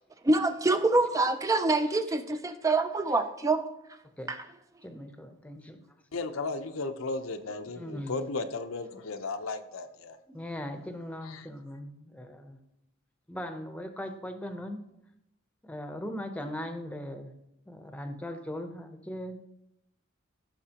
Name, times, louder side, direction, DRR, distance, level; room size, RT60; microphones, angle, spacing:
voice 1, 0.3-3.7 4.3-4.4, right 2 dB, 15° right, 9 dB, 0.3 m, -26 dB
voice 2, 1.5-2.2 4.2-4.3 4.8-5.8 7.8-8.3 10.3-12.6 13.3-14.8 15.6-17.3 17.7-19.4, left 1 dB, 5° left, 6 dB, 0.7 m, -39 dB
voice 3, 6.1-10.2 11.2-11.5, left 3 dB, 85° left, 7 dB, 0.7 m, -35 dB
14.5 x 5.9 x 2.9 m, 0.81 s
head